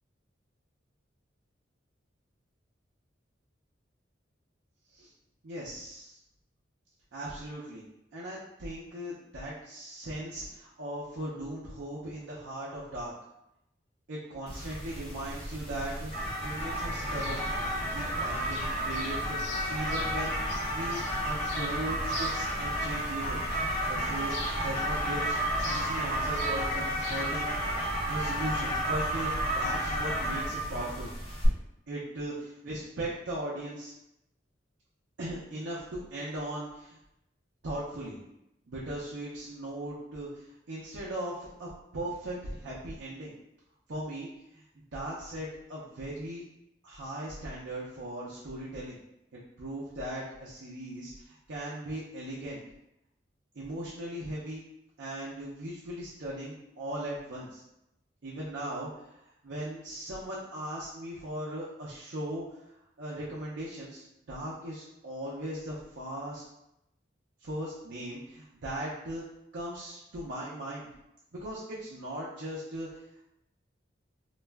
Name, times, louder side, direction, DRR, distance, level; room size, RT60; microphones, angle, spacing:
voice 1, 5.4-6.2 7.1-7.8 8.1-13.1 14.1-20.3 20.7-23.4 23.9-25.4 25.6-27.6 28.1-31.1 31.9-33.9 35.2-37.0 37.6-38.2 38.7-43.3 43.9-44.6 44.9-46.4 46.8-49.0 49.6-52.6 53.5-54.6 55.0-57.6 58.2-59.2 59.4-62.6 63.0-64.0 64.3-66.4 67.4-69.2 69.5-70.9 71.3-73.0, right 1 dB, 75° right, -6 dB, 0.5 m, -38 dB
sound 1, 14.5-31.5, equal, 30° left, 0.7 m, -32 dB
sound 2, 16.8-27.9, left 2 dB, 65° left, 0.5 m, -44 dB
2.3 x 2.1 x 3.3 m, 0.85 s
head